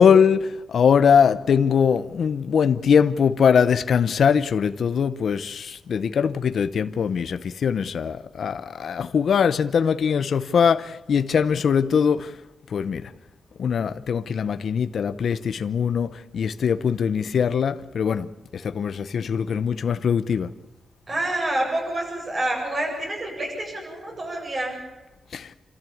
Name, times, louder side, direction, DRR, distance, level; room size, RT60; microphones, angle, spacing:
voice 1, 0.0-12.3 12.7-13.1 13.6-20.5 25.3-25.5, left 7 dB, 65° left, 0.8 m, -21 dB
voice 2, 21.1-24.8, right 1 dB, 35° right, 8.0 m, -27 dB
28.5 x 14.0 x 8.7 m
wide cardioid pair, 130°, 0 cm